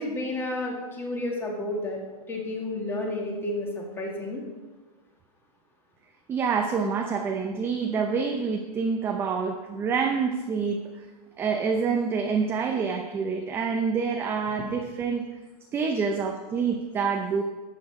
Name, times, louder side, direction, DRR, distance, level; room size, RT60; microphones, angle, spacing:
voice 1, 0.0-2.0 2.3-4.4, left 1 dB, 10° left, 0 dB, 2.0 m, -31 dB
voice 2, 6.3-11.1 11.4-15.3 15.7-17.4, right 5 dB, 10° right, 3 dB, 0.5 m, -27 dB
13.0 x 8.5 x 4.8 m, 1.2 s
hypercardioid pair, 155°, 20 cm